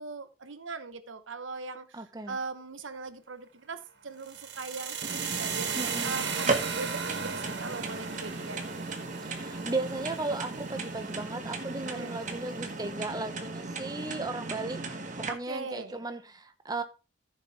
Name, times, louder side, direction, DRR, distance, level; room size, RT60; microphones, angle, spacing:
voice 1, 0.0-8.7 11.8-12.2 15.3-16.0, right 4 dB, 90° right, 1.1 m, -40 dB
voice 2, 1.9-2.4 5.8-6.1 9.2-14.8 15.3-16.8, right 2 dB, 20° right, 1.1 m, -36 dB
sound 1, 4.2-12.2, right 6 dB, 60° right, 1.6 m, -37 dB
sound 2, 5.0-15.3, right 3 dB, 40° right, 1.8 m, -36 dB
14.5 x 7.2 x 3.5 m
head